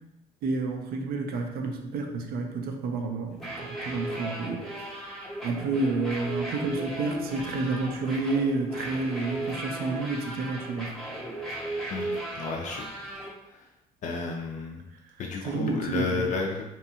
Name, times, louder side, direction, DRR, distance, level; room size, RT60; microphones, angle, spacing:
voice 1, 0.4-5.1 5.4-10.9 15.4-16.3, right 3 dB, 65° right, 4 dB, 0.5 m, -30 dB
sound 1, 3.3-13.3, right 1 dB, ahead, 0.7 m, -36 dB
voice 2, 12.4-12.8 14.0-14.8 15.2-16.6, left 4 dB, 45° left, 0 dB, 0.4 m, -31 dB
2.7 x 2.2 x 2.7 m, 0.93 s
cardioid pair, 110°, 17 cm